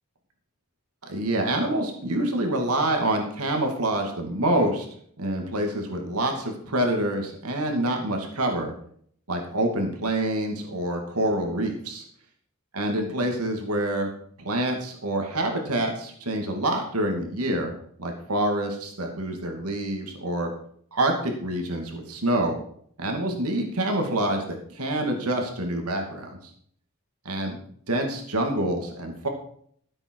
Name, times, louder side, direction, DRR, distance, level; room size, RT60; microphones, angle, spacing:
voice 1, 1.0-4.9 5.2-8.7 9.3-12.0 12.7-14.1 14.4-17.7 18.0-20.5 20.9-22.6 23.0-26.5 27.2-27.6 27.9-29.3, right 1 dB, 85° right, 3 dB, 2.6 m, -26 dB
14.5 x 8.0 x 4.8 m, 0.62 s
head